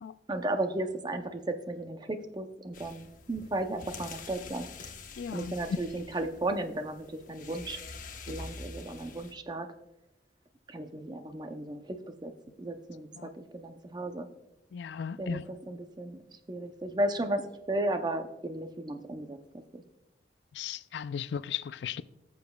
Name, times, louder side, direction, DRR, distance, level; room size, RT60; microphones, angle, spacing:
voice 1, 0.3-4.7 5.3-7.8 8.3-9.7 10.7-12.0 12.2-12.3 12.6-13.1 13.3-14.3 15.2-16.2 16.5-19.8, right 1 dB, 25° right, 0.6 m, -34 dB
sound 1, 2.7-9.3, left 4 dB, 50° left, 0.8 m, -46 dB
voice 2, 5.2-5.5 13.2-13.3 14.7-15.4 20.6-22.0, left 7 dB, 75° left, 0.3 m, -36 dB
17.0 x 7.0 x 2.3 m
head